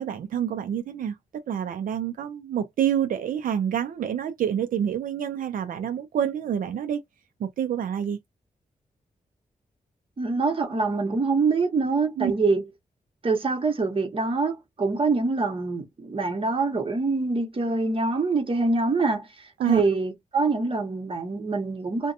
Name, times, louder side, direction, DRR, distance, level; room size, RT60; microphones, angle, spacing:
voice 1, 0.0-7.0 7.4-8.2 12.2-12.3 19.6-19.8, right 9 dB, 85° right, 0.4 m, -27 dB
voice 2, 10.2-12.6 13.2-22.1, right 3 dB, 40° right, 1.0 m, -25 dB
2.6 x 2.1 x 2.6 m
wide cardioid pair, 90°, 14 cm